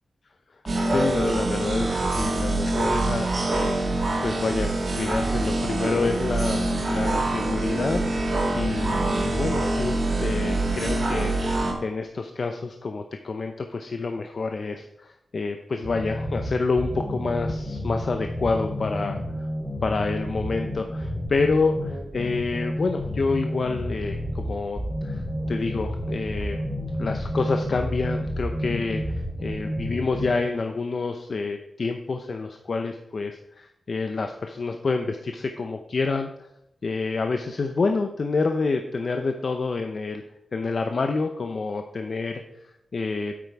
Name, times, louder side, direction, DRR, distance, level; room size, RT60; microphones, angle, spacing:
sound 1, 0.7-11.7, right 2 dB, 55° right, 2.5 m, -25 dB
voice 1, 0.9-19.5 19.8-26.6 27.0-36.5 36.8-40.2 40.5-43.3, left 4 dB, 60° left, 5 dB, 0.7 m, -28 dB
sound 2, 15.8-30.3, equal, 5° right, 4.2 m, -30 dB
8.9 x 8.5 x 4.7 m, 0.82 s
cardioid pair, 55°, 0 cm